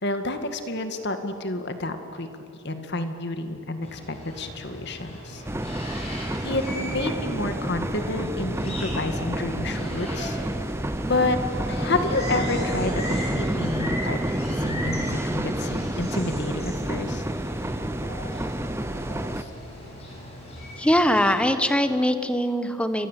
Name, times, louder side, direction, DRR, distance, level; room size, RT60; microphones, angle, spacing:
voice 1, 0.0-2.3 2.6-5.4 6.0-10.4 11.1-11.4 11.7-14.2 14.5-17.2 19.4-19.5, left 2 dB, 50° left, 7 dB, 2.0 m, -29 dB
sound 1, 3.8-21.3, equal, 30° left, 7.3 m, -38 dB
sound 2, 5.4-19.4, right 1 dB, 10° right, 0.7 m, -29 dB
voice 2, 20.8-23.1, equal, 5° left, 9 dB, 1.2 m, -22 dB
29.0 x 24.0 x 8.4 m, 2.9 s
head